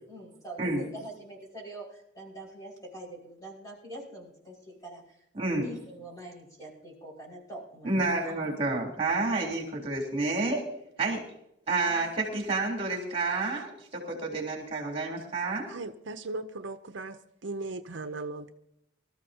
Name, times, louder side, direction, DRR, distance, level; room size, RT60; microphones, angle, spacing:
voice 1, 0.1-5.2 5.5-8.4 11.9-12.1, right 1 dB, 20° left, -3 dB, 5.2 m, -44 dB
voice 2, 5.3-5.7 7.8-10.6 11.0-11.2 11.7-15.8, right 3 dB, 30° right, -1 dB, 3.6 m, -29 dB
voice 3, 15.7-18.5, right 2 dB, 70° right, 8 dB, 0.7 m, -38 dB
24.5 x 14.0 x 2.9 m, 0.78 s
head